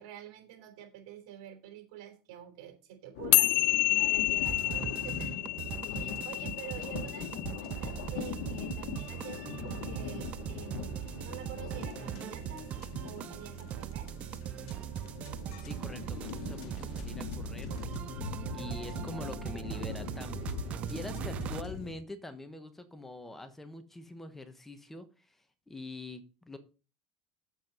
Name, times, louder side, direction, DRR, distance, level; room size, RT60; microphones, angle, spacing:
voice 1, 0.0-5.5 5.8-12.7 13.0-14.1, right 10 dB, 75° right, 6 dB, 3.5 m, -48 dB
sound 1, 3.1-21.9, left 8 dB, 75° left, 1.4 m, -42 dB
sound 2, 3.3-9.9, left 17 dB, 55° left, 0.4 m, -30 dB
sound 3, 4.4-21.6, right 12 dB, 40° right, 0.4 m, -40 dB
voice 2, 15.6-18.2 18.5-20.4 20.7-26.6, left 1 dB, 10° left, 10 dB, 1.1 m, -45 dB
7.4 x 7.4 x 5.3 m, 0.35 s
supercardioid pair, 120°, 3 cm